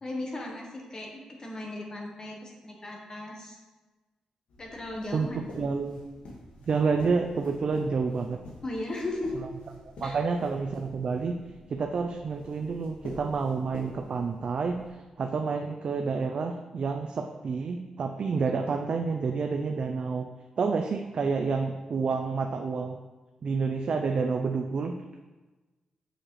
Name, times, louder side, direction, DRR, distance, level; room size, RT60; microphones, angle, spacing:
voice 1, 0.0-3.6 4.6-5.4 8.6-9.3 10.0-10.2 18.4-18.5, left 2 dB, 35° left, 0 dB, 1.2 m, -36 dB
sound 1, 4.5-14.9, left 1 dB, 90° left, 1.6 m, -48 dB
voice 2, 5.1-6.0 6.7-8.4 9.8-11.4 11.7-14.8 15.2-20.3 20.6-23.0 23.4-24.9, right 4 dB, 55° right, 4 dB, 0.4 m, -29 dB
6.5 x 6.2 x 3.1 m, 1.2 s
cardioid pair, 85°, 2 cm